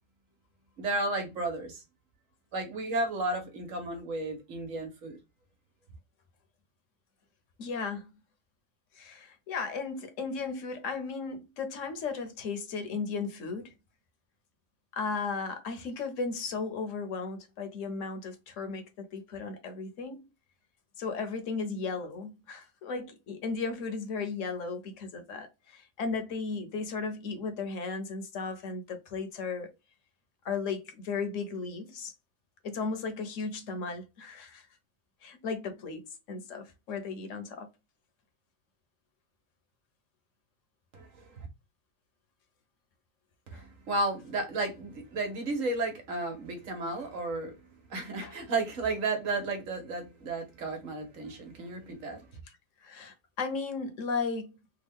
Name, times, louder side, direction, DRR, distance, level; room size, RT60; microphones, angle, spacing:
voice 1, 0.8-1.8 2.5-5.2 40.9-41.5 43.5-47.5 47.9-52.3, right 2 dB, 80° right, 1.4 m, -33 dB
voice 2, 7.6-8.1 9.0-13.7 14.9-20.3 21.0-29.7 30.4-32.1 32.6-34.7 35.2-37.7 43.5-43.6 48.2-48.3 52.8-54.6, left 4 dB, 75° left, 1.1 m, -35 dB
3.5 x 2.2 x 3.5 m
omnidirectional pair, 1.3 m